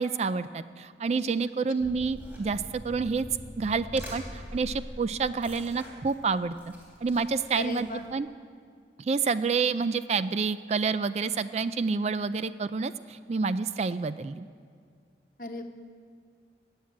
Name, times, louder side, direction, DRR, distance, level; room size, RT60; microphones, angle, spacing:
voice 1, 0.0-3.3 3.6-6.5 7.0-8.3 9.0-14.5, right 4 dB, 35° right, 14 dB, 0.3 m, -28 dB
sound 1, 1.8-8.1, equal, 10° right, 3.4 m, -44 dB
voice 2, 7.5-8.0 15.4-15.6, left 2 dB, 45° left, 5 dB, 1.1 m, -35 dB
19.0 x 7.3 x 8.5 m, 2.1 s
head